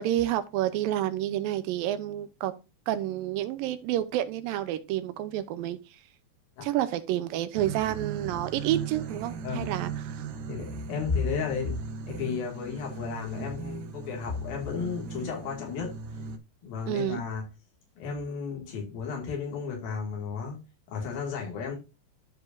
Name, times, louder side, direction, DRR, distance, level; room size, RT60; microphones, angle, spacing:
voice 1, 0.0-2.5 2.9-5.8 6.6-10.2 16.9-17.2, right 13 dB, 90° right, 2.5 m, -29 dB
sound 1, 7.5-16.4, right 6 dB, 70° right, 2.4 m, -38 dB
voice 2, 10.5-11.8 12.1-15.9 16.6-17.4 18.0-20.6 20.9-21.8, left 5 dB, 85° left, 4.1 m, -33 dB
12.5 x 5.0 x 2.6 m
omnidirectional pair, 4.1 m